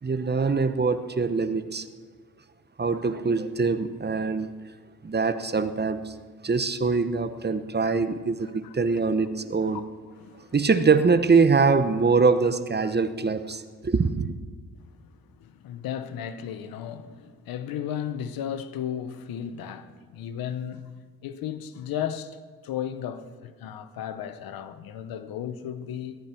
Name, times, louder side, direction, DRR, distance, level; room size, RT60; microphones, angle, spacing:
voice 1, 0.0-1.9 2.8-4.5 5.0-6.1 6.4-9.8 10.5-14.3, right 4 dB, 30° right, 1.0 m, -23 dB
voice 2, 10.2-10.5 14.8-26.2, left 9 dB, 85° left, 0.9 m, -35 dB
18.5 x 13.0 x 4.5 m
supercardioid pair, 55°, 34 cm